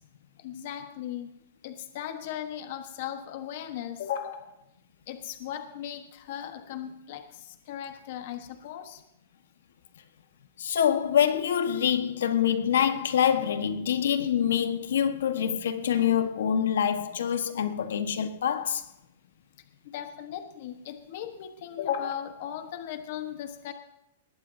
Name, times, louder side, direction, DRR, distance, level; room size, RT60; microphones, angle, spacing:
voice 1, 0.4-1.3 1.6-4.5 5.1-9.0 19.8-23.7, left 10 dB, 40° left, 1.2 m, -37 dB
voice 2, 10.6-18.8, left 9 dB, 80° left, 1.4 m, -25 dB
20.0 x 17.0 x 2.8 m
supercardioid pair, 180°, 0 cm